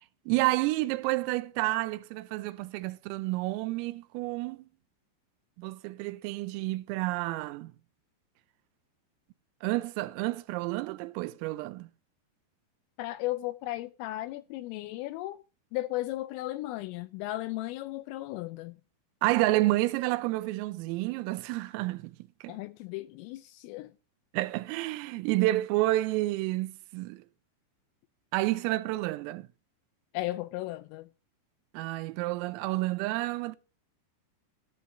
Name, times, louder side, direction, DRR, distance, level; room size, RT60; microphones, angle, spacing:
voice 1, 0.0-4.7 5.6-7.7 9.6-11.9 19.2-22.2 22.4-22.6 24.3-27.2 28.3-29.5 31.7-33.6, right 18 dB, 85° right, 3.3 m, -30 dB
voice 2, 13.0-15.4 15.7-18.8 22.5-23.9 30.1-31.1, left 17 dB, 85° left, 3.1 m, -35 dB
14.5 x 10.0 x 2.6 m
omnidirectional pair, 5.9 m